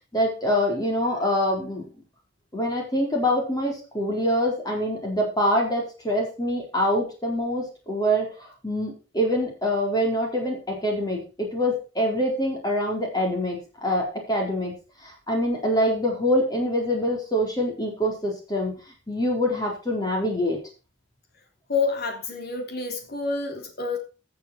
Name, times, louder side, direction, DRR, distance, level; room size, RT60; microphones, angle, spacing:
voice 1, 0.1-1.9 2.5-14.7 15.0-18.7 19.1-20.6, equal, 20° left, 4.3 m, -25 dB
voice 2, 21.7-24.0, left 4 dB, 55° left, 3.6 m, -28 dB
14.5 x 7.2 x 4.6 m
head